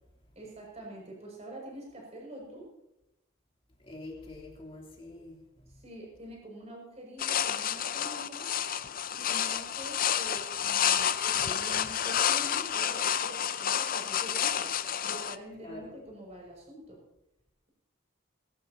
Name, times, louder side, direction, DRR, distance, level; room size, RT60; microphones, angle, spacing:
voice 1, 0.3-2.7 5.7-8.5 9.1-14.7 15.0-17.0, right 1 dB, 30° right, -1 dB, 6.7 m, -46 dB
voice 2, 3.8-5.7 15.6-16.0, left 2 dB, 25° left, -2 dB, 3.2 m, -45 dB
sound 1, 7.2-15.4, left 9 dB, 45° left, 0.6 m, -29 dB
20.5 x 17.0 x 2.9 m, 0.89 s
head